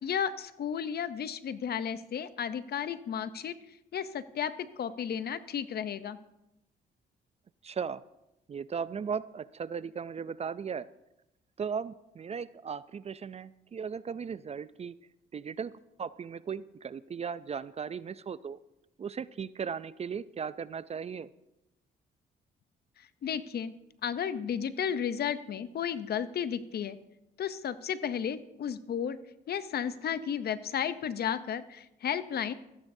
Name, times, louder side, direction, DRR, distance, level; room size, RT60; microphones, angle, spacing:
voice 1, 0.0-3.6 3.9-6.2 23.0-23.7 24.0-27.0 27.4-29.2 29.5-32.5, left 8 dB, 60° left, 14 dB, 0.7 m, -33 dB
voice 2, 7.6-8.0 8.5-10.9 11.6-14.9 15.3-15.7 16.0-18.6 19.0-21.3, right 6 dB, 35° right, 17 dB, 0.4 m, -37 dB
14.5 x 13.5 x 2.7 m, 0.91 s
cardioid pair, 80°, 19 cm